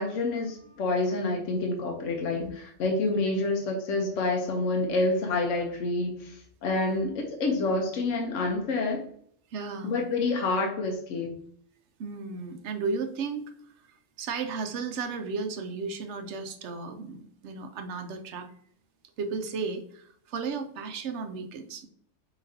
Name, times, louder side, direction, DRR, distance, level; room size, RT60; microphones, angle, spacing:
voice 1, 0.0-9.0 9.8-11.3, left 2 dB, 75° left, 2 dB, 1.1 m, -28 dB
voice 2, 9.5-10.0 12.0-13.5 14.2-18.5 19.2-21.9, right 4 dB, 65° right, 8 dB, 0.9 m, -34 dB
5.1 x 3.9 x 2.7 m, 0.62 s
omnidirectional pair, 1.3 m